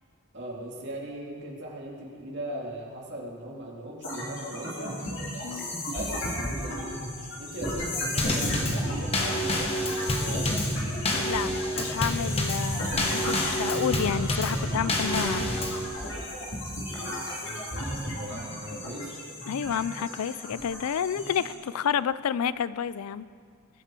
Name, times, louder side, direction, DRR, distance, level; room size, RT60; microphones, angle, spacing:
voice 1, 0.3-4.9 5.9-6.3 6.5-7.1 7.4-10.7 16.9-19.2, right 1 dB, 50° right, -3 dB, 2.6 m, -39 dB
sound 1, 4.0-21.5, left 1 dB, 55° left, 3.2 m, -34 dB
Drum kit / Snare drum / Bass drum, 8.2-15.9, left 1 dB, 25° left, 1.3 m, -28 dB
voice 2, 11.3-15.6 19.5-23.3, left 8 dB, 85° left, 17 dB, 0.4 m, -30 dB
20.5 x 10.0 x 4.5 m, 2.1 s
head